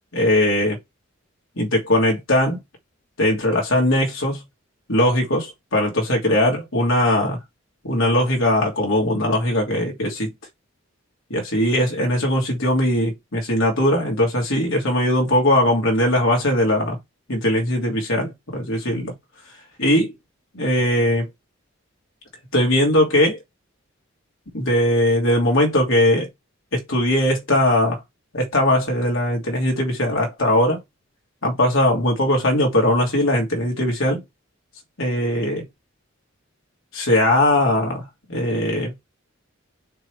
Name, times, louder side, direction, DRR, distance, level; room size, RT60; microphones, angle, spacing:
voice 1, 0.1-0.8 1.6-2.6 3.2-4.4 4.9-7.4 7.8-10.3 11.3-17.0 17.3-19.1 19.8-20.1 20.5-21.3 22.5-23.4 24.5-26.3 26.7-28.0 28.3-30.8 31.4-34.2 35.0-35.7 36.9-38.0 38.3-38.9, left 1 dB, 70° left, 2.9 m, -20 dB
6.6 x 3.3 x 4.9 m
head